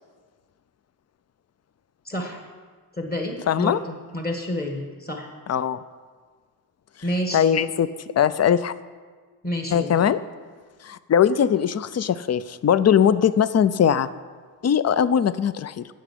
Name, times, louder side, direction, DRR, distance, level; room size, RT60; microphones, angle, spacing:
voice 1, 2.0-2.4 3.0-3.8 4.1-5.3 7.0-7.4 9.4-9.9, equal, 25° left, 2 dB, 1.6 m, -29 dB
voice 2, 3.5-3.8 5.5-5.8 7.3-7.9 8.2-8.7 9.7-10.2 10.8-14.1 14.6-15.9, left 8 dB, 45° left, 16 dB, 0.5 m, -20 dB
11.0 x 8.0 x 8.5 m, 1.5 s
wide cardioid pair, 145°, 37 cm